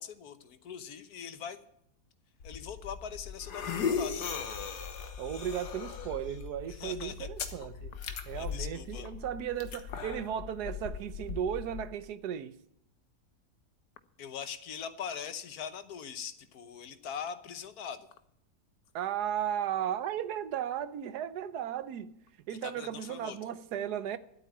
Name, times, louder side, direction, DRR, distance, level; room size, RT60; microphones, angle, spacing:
voice 1, 0.0-1.6 2.4-4.3 6.7-7.3 8.3-9.1 14.2-18.1 22.5-23.4, left 7 dB, 70° left, 1.4 m, -42 dB
sound 1, 2.4-11.9, left 6 dB, 85° left, 1.8 m, -38 dB
voice 2, 5.2-7.9 8.3-12.6 18.9-22.2 22.5-24.2, right 10 dB, 80° right, 1.4 m, -35 dB
12.5 x 8.4 x 9.0 m
omnidirectional pair, 1.7 m